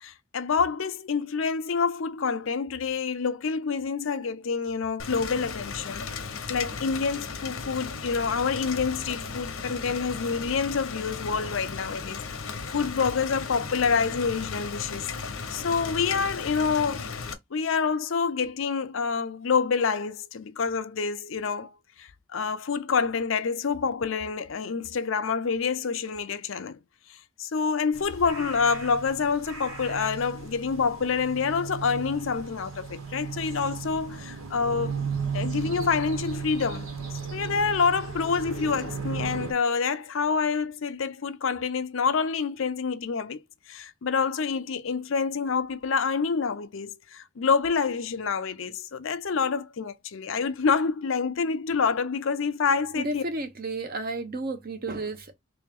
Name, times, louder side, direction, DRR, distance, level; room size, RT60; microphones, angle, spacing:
voice 1, 0.0-12.2 12.7-15.1 15.5-17.1 17.5-21.7 22.0-26.8 27.1-35.0 35.3-43.4 43.7-53.2, left 5 dB, 65° left, 0.5 m, -27 dB
Rain, 5.0-17.3, left 5 dB, 85° left, 0.9 m, -36 dB
sound 1, 27.9-39.5, right 5 dB, 85° right, 1.6 m, -35 dB
voice 2, 52.9-55.3, right 2 dB, 45° right, 0.8 m, -32 dB
3.3 x 3.1 x 3.6 m
head